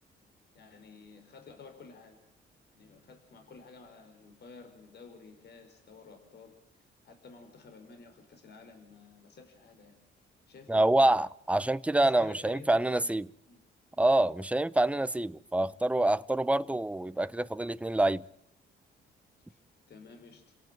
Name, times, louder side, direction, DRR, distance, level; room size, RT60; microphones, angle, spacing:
voice 1, 0.5-2.2 2.7-6.6 7.0-10.0 10.5-11.2 12.0-13.2 13.5-13.6 19.5-19.6 19.9-20.4, left 4 dB, 55° left, 5.1 m, -51 dB
voice 2, 10.7-13.3 14.0-18.2, right 1 dB, 5° right, 0.9 m, -26 dB
29.5 x 17.5 x 7.6 m
cardioid pair, 90°, 20 cm